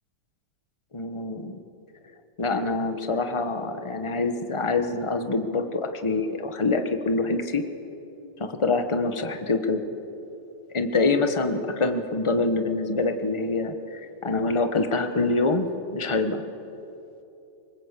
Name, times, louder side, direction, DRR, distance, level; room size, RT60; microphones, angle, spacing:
voice 1, 0.9-1.6 2.4-7.6 8.4-9.8 10.7-15.7 15.9-16.4, left 3 dB, 20° left, 7 dB, 1.2 m, -25 dB
24.5 x 22.0 x 8.4 m, 2.9 s
omnidirectional pair, 2.1 m